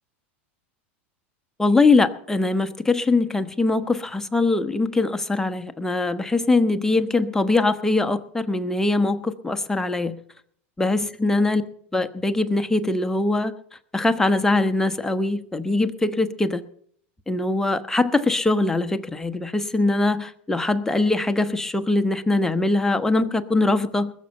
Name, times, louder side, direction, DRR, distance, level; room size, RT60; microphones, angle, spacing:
voice 1, 1.6-10.2 10.8-11.6 11.9-13.5 13.9-16.6 17.3-24.1, left 2 dB, 5° left, 8 dB, 1.0 m, -22 dB
20.5 x 7.0 x 6.5 m, 0.64 s
hypercardioid pair, 95°, 7 cm